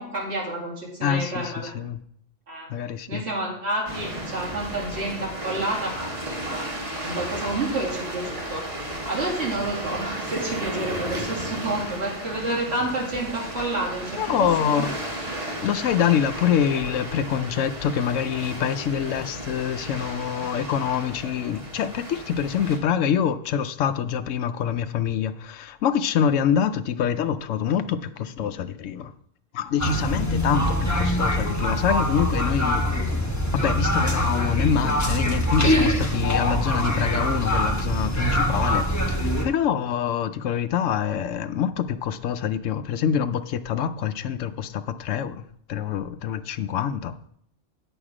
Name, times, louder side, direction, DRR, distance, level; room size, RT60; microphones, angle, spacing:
voice 1, 0.0-1.7 2.5-2.7 3.1-14.5 14.8-14.9, right 2 dB, 60° right, 2.8 m, -30 dB
voice 2, 1.0-2.0 2.7-3.2 14.2-15.0 15.6-29.1 29.5-32.8 33.5-45.4 45.7-47.2, left 8 dB, 85° left, 1.0 m, -25 dB
Seaside soft waves, 3.9-22.8, right 1 dB, 25° right, 1.7 m, -34 dB
sound 1, 29.8-39.5, equal, 15° left, 1.1 m, -23 dB
9.0 x 7.1 x 4.9 m
omnidirectional pair, 1.3 m